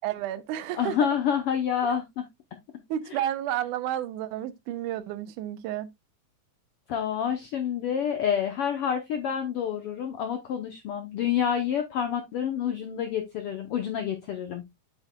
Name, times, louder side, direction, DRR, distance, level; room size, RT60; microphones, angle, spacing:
voice 1, 0.0-1.1 1.8-1.9 2.9-5.9, right 11 dB, 80° right, 2.2 m, -31 dB
voice 2, 0.8-2.3 3.1-3.2 6.9-14.6, left 8 dB, 75° left, 1.3 m, -28 dB
8.1 x 7.9 x 2.2 m
omnidirectional pair, 3.6 m